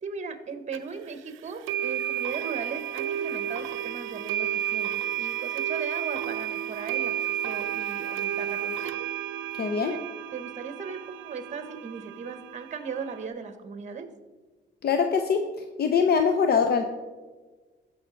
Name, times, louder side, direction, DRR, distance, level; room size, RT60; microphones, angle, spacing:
voice 1, 0.0-9.0 9.8-10.0 10.3-14.1, right 5 dB, 35° right, 9 dB, 1.0 m, -38 dB
sound 1, 0.7-0.8 1.7-13.3, right 10 dB, 90° right, 0.4 m, -32 dB
voice 2, 9.6-9.9 14.8-15.4 15.8-16.8, left 6 dB, 55° left, 6 dB, 0.7 m, -22 dB
15.5 x 5.7 x 3.8 m, 1.3 s
cardioid pair, 90°, 20 cm